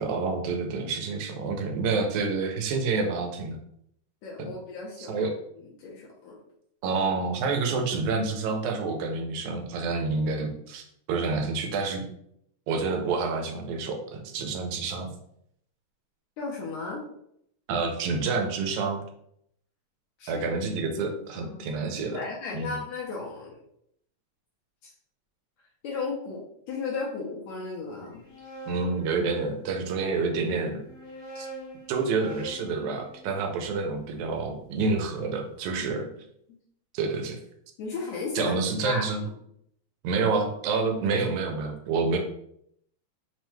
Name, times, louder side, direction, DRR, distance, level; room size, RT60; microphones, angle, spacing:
voice 1, 0.0-3.6 4.4-4.5 5.0-5.3 6.8-12.0 12.7-15.1 17.7-19.0 20.3-22.2 22.5-22.8 28.7-30.8 31.4-31.5 31.9-36.0 36.9-37.4 38.4-39.2 40.0-42.2, right 4 dB, 90° right, 4 dB, 2.0 m, -28 dB
voice 2, 4.2-5.3 5.6-6.4 16.4-17.0 20.2-20.5 20.8-20.9 21.4-23.5 25.8-28.2 35.7-36.1 37.8-39.3, left 4 dB, 75° left, -3 dB, 1.8 m, -35 dB
sound 1, 28.0-29.9 30.7-34.9, right 1 dB, 45° left, 1.1 m, -44 dB
5.4 x 2.2 x 3.0 m, 0.71 s
omnidirectional pair, 3.3 m